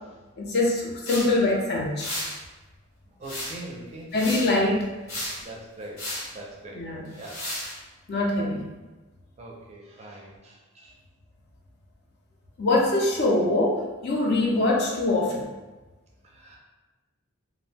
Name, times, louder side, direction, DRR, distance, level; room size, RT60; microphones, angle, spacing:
voice 1, 0.4-2.1 4.1-4.9 6.7-7.1 8.1-8.6 12.6-15.5, left 2 dB, 50° left, -2 dB, 0.5 m, -23 dB
sound 1, 1.1-1.3 2.0-2.4 3.2-3.7 4.1-4.5 5.1-5.4 6.0-6.3 7.2-7.8, left 1 dB, 75° left, 1.0 m, -33 dB
voice 2, 3.2-4.1 4.6-4.7 5.4-6.8 7.2-7.4 9.4-10.9 16.2-16.6, right 1 dB, 30° right, -2 dB, 0.4 m, -42 dB
2.4 x 2.1 x 3.3 m, 1.2 s
head